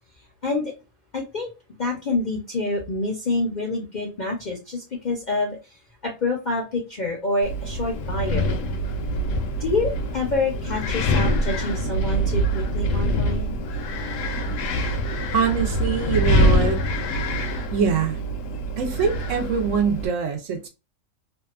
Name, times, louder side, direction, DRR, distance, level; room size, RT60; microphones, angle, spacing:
voice 1, 0.4-0.7 1.1-1.5 1.8-5.6 6.0-8.5 9.6-13.5, left 2 dB, 50° left, 0.5 m, -27 dB
Wind, 7.4-20.1, equal, 70° left, 0.9 m, -24 dB
voice 2, 15.3-16.8 17.7-18.2 18.8-20.7, right 6 dB, 70° right, 1.0 m, -23 dB
2.7 x 2.2 x 2.3 m
omnidirectional pair, 1.5 m